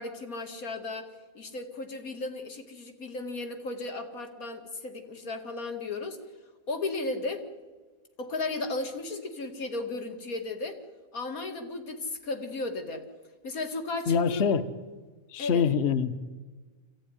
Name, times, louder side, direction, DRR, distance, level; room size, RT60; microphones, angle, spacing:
voice 1, 0.0-6.2 6.7-7.5 8.2-10.8 11.1-13.0 13.4-14.5 15.4-15.7, left 3 dB, 85° left, 6 dB, 2.7 m, -35 dB
voice 2, 14.1-14.7 15.3-16.2, left 6 dB, 55° left, 12 dB, 1.1 m, -25 dB
27.5 x 14.0 x 9.9 m, 1.4 s
omnidirectional pair, 1.5 m